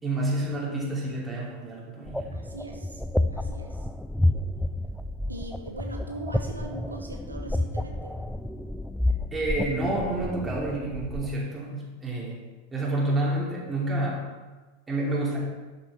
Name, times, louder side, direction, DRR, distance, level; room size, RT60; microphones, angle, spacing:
voice 1, 0.0-2.4 9.3-12.4 12.7-14.3 14.9-15.4, right 2 dB, 15° right, -4 dB, 2.8 m, -29 dB
sound 1, 2.1-11.3, left 1 dB, ahead, 0.3 m, -30 dB
voice 2, 2.3-3.0 3.3-3.9 5.3-8.1, right 2 dB, 80° right, 2 dB, 0.8 m, -40 dB
11.5 x 6.9 x 3.3 m, 1.2 s
figure-of-eight pair, 90°, 0 cm